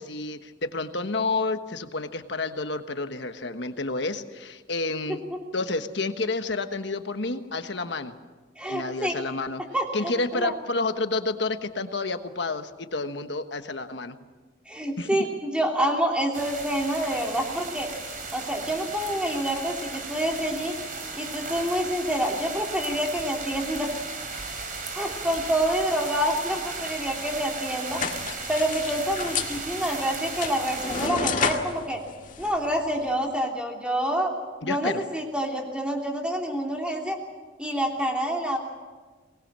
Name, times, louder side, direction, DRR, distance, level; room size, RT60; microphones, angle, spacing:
voice 1, 0.0-5.2 5.5-8.1 8.7-9.6 9.9-14.2 15.0-15.1 34.6-35.0, left 3 dB, 65° left, 8 dB, 1.3 m, -30 dB
voice 2, 8.6-9.2 9.7-10.5 14.7-17.9 18.3-20.7 21.2-23.9 24.9-28.0 28.5-32.0 32.4-34.3 34.6-37.2 37.6-38.6, equal, 5° right, 1 dB, 3.2 m, -27 dB
sound 1, 16.3-31.1, right 4 dB, 45° right, 3.5 m, -36 dB
sound 2, 27.9-33.1, left 5 dB, 45° left, 1.9 m, -32 dB
23.0 x 20.0 x 7.5 m, 1.4 s
head